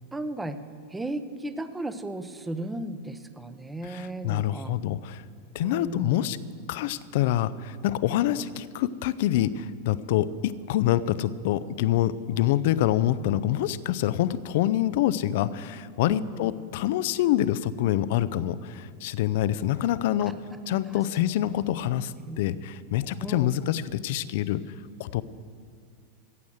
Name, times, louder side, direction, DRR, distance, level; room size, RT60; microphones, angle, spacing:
voice 1, 0.1-0.6 0.9-4.7 5.6-6.2 16.0-16.5 20.3-20.4 20.9-21.0 21.4-21.5 22.3-22.4 23.2-23.5, right 1 dB, 10° right, 11 dB, 0.8 m, -35 dB
voice 2, 3.8-5.2 5.5-6.4 6.7-20.4 20.7-24.6 25.0-25.2, left 12 dB, 50° left, 16 dB, 0.5 m, -26 dB
15.0 x 8.3 x 7.7 m, 2.3 s
figure-of-eight pair, 90°, 0 cm